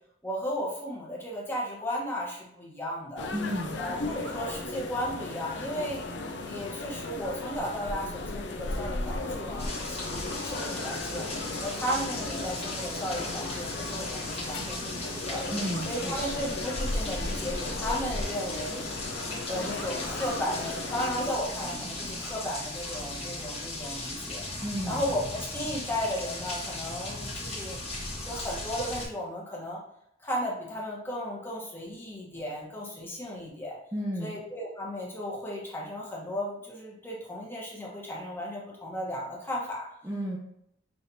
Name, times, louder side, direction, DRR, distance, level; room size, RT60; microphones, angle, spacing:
voice 1, 0.2-3.3 3.8-6.0 6.4-11.3 11.6-15.4 15.8-18.8 19.5-24.4 24.9-27.8 28.1-29.8 30.2-33.8 34.2-39.9, equal, 10° left, -4 dB, 1.0 m, -35 dB
sound 1, 3.2-21.3, left 2 dB, 65° left, 0.5 m, -36 dB
voice 2, 3.3-3.8 15.5-16.5 24.6-25.0 33.9-34.3 40.0-40.4, equal, 10° right, -5 dB, 0.5 m, -33 dB
sound 2, 4.2-4.7 5.1-7.1 7.4-8.4 9.2-9.7 10.0-10.4 10.8-11.4 11.6-11.7 12.0-12.1 12.3-12.4 12.7-12.8 13.5-14.6 15.6-16.3 16.5-16.6 16.9-17.3 17.7-18.7 19.7-20.6 21.3-21.7, right 3 dB, 65° right, 0.7 m, -50 dB
sound 3, 9.6-29.1, left 2 dB, 30° left, 1.1 m, -37 dB
5.6 x 3.3 x 2.7 m, 0.76 s
head